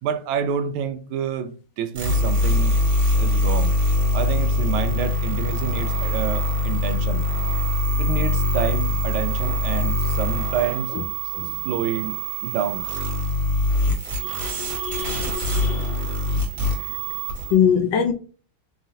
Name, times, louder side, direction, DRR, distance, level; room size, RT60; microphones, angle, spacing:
voice 1, 0.0-2.7 3.2-3.7 4.1-7.2 8.0-10.9 11.6-12.2 12.4-12.9, right 7 dB, 80° right, 1.4 m, -28 dB
sound 1, 1.9-17.5, left 2 dB, 45° right, 1.6 m, -23 dB
voice 2, 14.2-16.0 17.5-18.1, left 8 dB, 75° left, 1.1 m, -23 dB
4.8 x 3.0 x 2.7 m
omnidirectional pair, 2.4 m